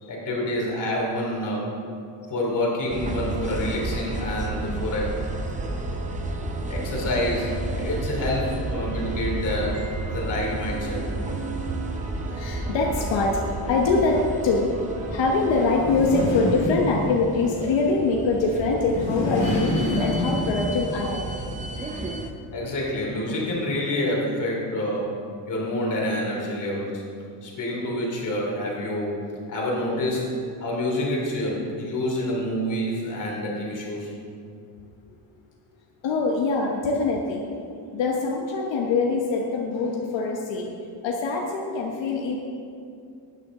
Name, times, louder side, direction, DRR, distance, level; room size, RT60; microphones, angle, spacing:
voice 1, 0.1-1.7 2.3-5.2 6.7-11.0 22.5-25.1 25.5-27.0 27.4-29.2 29.5-30.3 30.6-34.1, left 1 dB, 45° left, -3 dB, 2.9 m, -27 dB
sound 1, 2.9-22.3, right 2 dB, 20° right, 0.6 m, -32 dB
sound 2, 3.3-16.3, right 1 dB, 60° right, 1.5 m, -41 dB
voice 2, 5.7-6.6 11.8-14.7 15.0-21.3 36.0-37.4 37.9-40.7 41.0-42.4, left 3 dB, 85° left, -1 dB, 1.2 m, -24 dB
sound 3, 15.7-17.4 18.7-20.9, left 1 dB, 65° left, 2.4 m, -27 dB
12.5 x 9.7 x 3.7 m, 2.5 s
cardioid pair, 170°, 44 cm